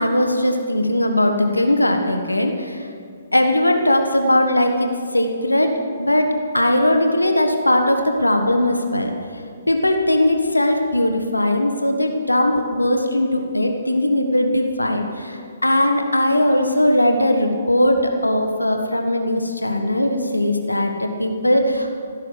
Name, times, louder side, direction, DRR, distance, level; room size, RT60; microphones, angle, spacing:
voice 1, 0.0-2.9 3.3-9.1 9.7-22.0, left 1 dB, 85° left, 4 dB, 1.6 m, -19 dB
15.5 x 12.5 x 6.7 m, 2.2 s
figure-of-eight pair, 130°, 0 cm